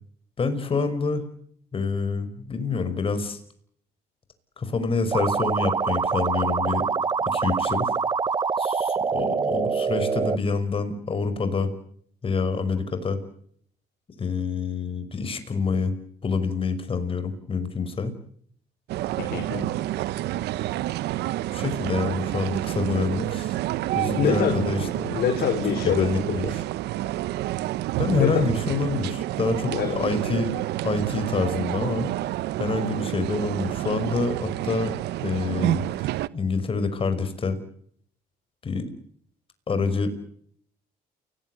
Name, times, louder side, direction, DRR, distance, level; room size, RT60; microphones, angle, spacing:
voice 1, 0.4-1.2 1.7-3.4 4.6-6.9 7.3-7.9 8.6-11.7 12.2-13.2 14.2-15.9 16.2-18.1 21.5-23.6 24.0-25.1 25.8-26.6 28.0-30.5 30.8-32.1 32.6-34.9 35.2-35.9 36.3-37.6 38.6-38.9 39.7-40.1, left 4 dB, 30° left, 10 dB, 5.6 m, -27 dB
sound 1, 5.1-10.4, right 5 dB, 25° right, 1.0 m, -25 dB
sound 2, 18.9-36.3, right 15 dB, 80° right, 1.0 m, -29 dB
voice 2, 19.2-19.7 24.2-26.1 26.4-26.5 28.2-28.4 29.7-29.9, left 8 dB, 65° left, 6 dB, 5.4 m, -25 dB
29.5 x 19.5 x 8.0 m, 0.65 s
cardioid pair, 110°, 17 cm